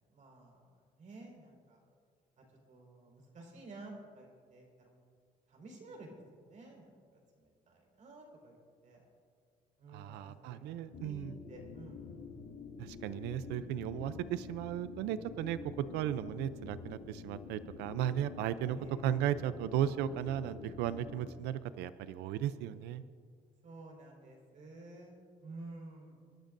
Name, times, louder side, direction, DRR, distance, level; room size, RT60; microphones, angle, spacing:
voice 1, 0.1-1.8 2.4-5.0 5.5-7.0 7.4-8.6 8.8-9.0 9.8-12.7 13.3-13.6 18.7-19.0 23.6-26.2, right 2 dB, 45° right, 0 dB, 4.3 m, -52 dB
voice 2, 9.9-11.4 12.8-23.0, right 11 dB, 90° right, 14 dB, 0.5 m, -36 dB
sound 1, 10.9-21.3, left 5 dB, 70° left, 1.8 m, -48 dB
26.0 x 12.0 x 2.6 m, 2.1 s
cardioid pair, 110°, 17 cm